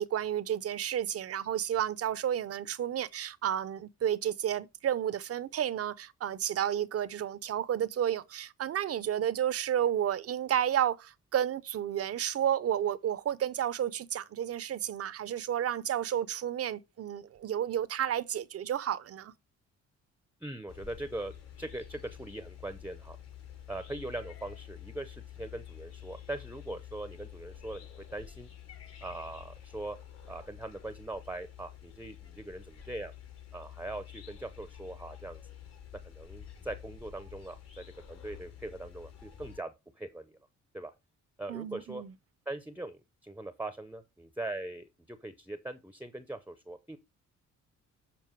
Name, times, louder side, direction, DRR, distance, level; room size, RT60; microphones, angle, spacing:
voice 1, 0.0-19.3 41.5-42.1, right 10 dB, 50° right, 0.6 m, -31 dB
voice 2, 20.4-21.3 21.6-23.2 23.7-28.5 29.0-30.0 30.3-33.1 33.5-35.4 36.0-40.4 40.7-40.9 41.4-42.0 42.5-47.0, right 2 dB, 5° right, 0.7 m, -41 dB
sound 1, 20.7-39.6, left 10 dB, 60° left, 5.4 m, -49 dB
7.6 x 4.5 x 4.5 m
cardioid pair, 90°, 30 cm